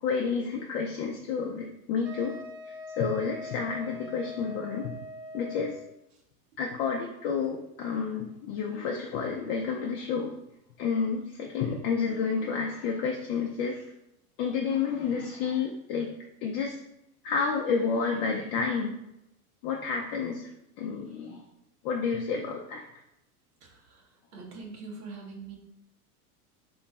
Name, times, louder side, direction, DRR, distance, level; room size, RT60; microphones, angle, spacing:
voice 1, 0.0-2.4 2.7-4.9 5.3-5.8 6.6-10.3 10.8-13.9 14.4-16.1 16.4-16.8 17.2-19.0 19.6-20.5 20.8-21.4 21.8-22.8, left 5 dB, 45° left, 1 dB, 0.5 m, -30 dB
Wind instrument woodwind instrument, 2.0-5.9, left 3 dB, 35° right, 0.5 m, -42 dB
voice 2, 23.6-24.0 24.3-25.6, right 4 dB, 90° right, 0 dB, 1.0 m, -43 dB
3.1 x 2.2 x 4.1 m, 0.84 s
hypercardioid pair, 110°, 44 cm